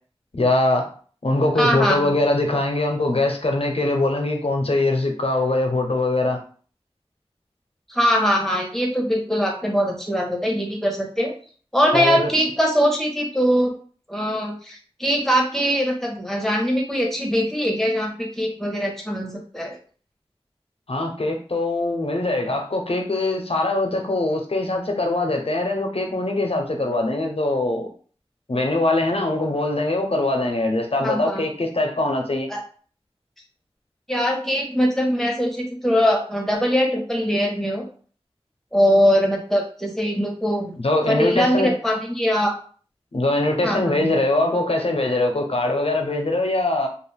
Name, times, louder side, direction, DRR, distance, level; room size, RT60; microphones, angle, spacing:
voice 1, 0.3-0.9 1.2-6.4 11.9-12.3 20.9-27.9 28.5-32.5 40.8-41.7 43.1-46.9, left 2 dB, 70° left, 3 dB, 0.6 m, -22 dB
voice 2, 1.6-2.2 7.9-11.3 11.7-13.7 14.1-19.8 31.0-31.5 32.5-32.6 34.1-37.8 38.7-40.7 41.1-42.6 43.6-44.2, equal, 5° left, 0 dB, 0.9 m, -22 dB
2.4 x 2.3 x 3.2 m, 0.43 s
wide cardioid pair, 40°, 11 cm